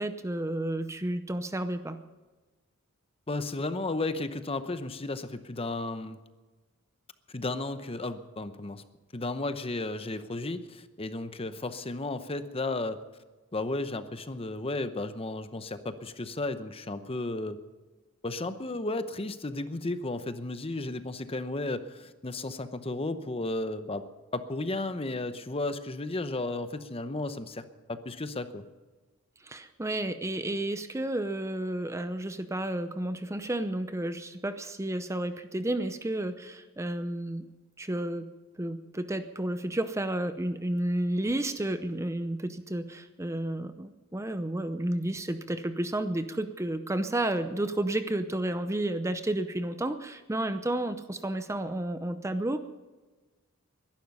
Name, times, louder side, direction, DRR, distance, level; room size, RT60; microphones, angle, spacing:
voice 1, 0.0-2.0 29.4-37.5 37.8-38.3 38.6-52.6, right 1 dB, 15° right, 10 dB, 0.7 m, -31 dB
voice 2, 3.3-6.2 7.3-8.8 9.1-13.0 13.5-17.6 18.2-24.1 24.3-28.6, left 2 dB, 25° left, 11 dB, 0.8 m, -34 dB
21.5 x 12.0 x 5.5 m, 1.3 s
head